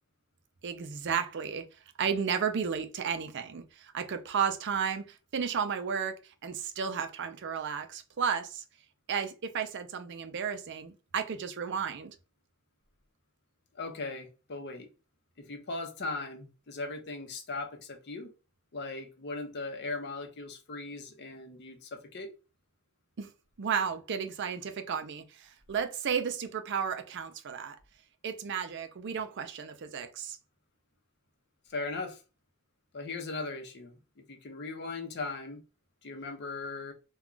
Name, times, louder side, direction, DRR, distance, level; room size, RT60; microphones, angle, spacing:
voice 1, 0.6-1.7 2.0-8.6 9.1-12.1 23.2-23.3 23.6-27.8 28.2-30.4, right 7 dB, 55° right, 0.5 m, -33 dB
voice 2, 13.7-14.9 15.4-18.3 18.7-22.3 31.7-32.2 32.9-35.6 36.0-36.9, left 3 dB, 50° left, 0.7 m, -38 dB
2.3 x 2.3 x 3.7 m
head